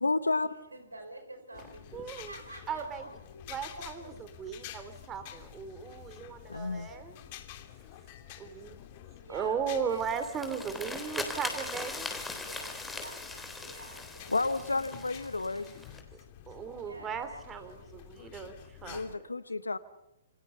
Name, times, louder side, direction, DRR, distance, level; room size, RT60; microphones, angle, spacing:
voice 1, 0.0-0.5 3.3-3.4 3.8-3.9 6.5-6.9 14.3-15.7 18.9-19.8, left 3 dB, 85° left, 13 dB, 1.0 m, -31 dB
voice 2, 0.7-3.0 9.2-10.1 11.2-11.8 12.4-15.7 16.7-17.8, right 2 dB, 90° right, 7 dB, 4.7 m, -49 dB
sound 1, 1.5-19.2, left 11 dB, 40° left, 2.8 m, -50 dB
voice 3, 1.9-2.3 2.7-3.0 3.5-7.1 8.4-8.8 9.3-12.1 16.5-18.5 18.8-19.3, right 7 dB, 20° right, 10 dB, 3.0 m, -37 dB
sound 2, 9.9-16.0, left 3 dB, 5° left, 3.6 m, -40 dB
27.5 x 27.5 x 5.6 m, 0.90 s
figure-of-eight pair, 125°, 0 cm